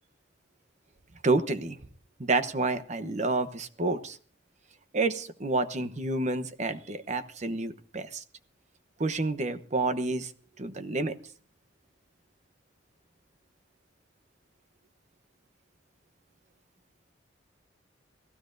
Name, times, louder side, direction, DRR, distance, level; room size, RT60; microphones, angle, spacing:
voice 1, 1.2-1.8 2.2-4.2 4.9-8.2 9.0-10.3 10.6-11.2, right 3 dB, 40° right, 10 dB, 0.9 m, -29 dB
28.5 x 16.5 x 2.6 m, 0.43 s
head